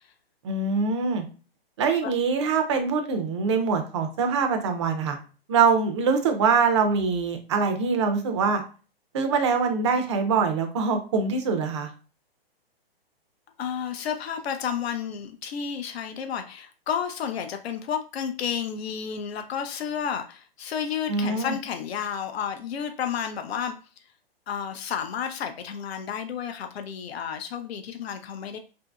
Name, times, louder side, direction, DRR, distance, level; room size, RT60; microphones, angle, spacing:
voice 1, 0.4-1.2 1.8-5.2 5.5-8.6 9.1-11.9 21.1-21.5, right 5 dB, 30° right, 5 dB, 0.4 m, -24 dB
voice 2, 13.6-23.8 24.5-28.6, left 8 dB, 80° left, 6 dB, 0.5 m, -31 dB
2.8 x 2.6 x 2.2 m, 0.36 s
hypercardioid pair, 150°, 31 cm